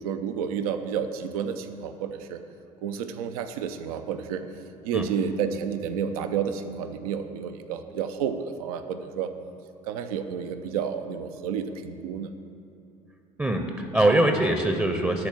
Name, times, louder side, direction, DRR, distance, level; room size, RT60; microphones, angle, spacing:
voice 1, 0.0-2.4 2.8-4.4 4.8-9.3 9.8-12.3, right 7 dB, 60° right, 8 dB, 0.7 m, -30 dB
voice 2, 13.4-15.3, right 1 dB, 10° right, 5 dB, 0.8 m, -23 dB
12.5 x 4.4 x 7.5 m, 2.8 s
figure-of-eight pair, 65°, 21 cm